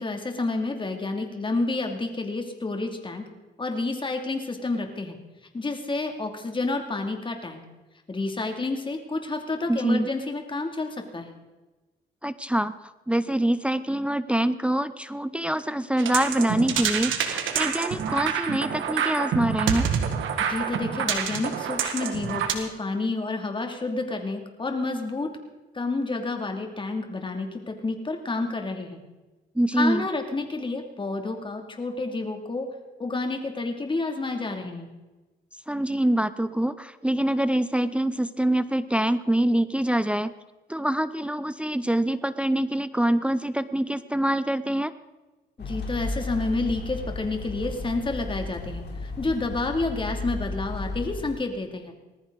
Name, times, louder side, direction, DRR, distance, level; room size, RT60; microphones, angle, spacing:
voice 1, 0.0-3.3 3.6-5.2 5.5-7.6 8.1-11.3 20.5-25.3 25.7-29.0 29.7-32.7 33.0-34.9 45.6-51.9, left 3 dB, 25° left, 4 dB, 2.7 m, -29 dB
voice 2, 9.7-10.1 12.2-12.7 13.1-19.9 29.6-30.1 35.7-40.3 40.7-44.9, right 1 dB, 5° right, 13 dB, 0.6 m, -25 dB
sound 1, 16.0-22.5, right 7 dB, 80° right, 2.0 m, -27 dB
sound 2, 45.6-51.3, left 2 dB, 60° left, 3.4 m, -34 dB
19.5 x 14.0 x 4.0 m, 1.2 s
cardioid pair, 90°, 20 cm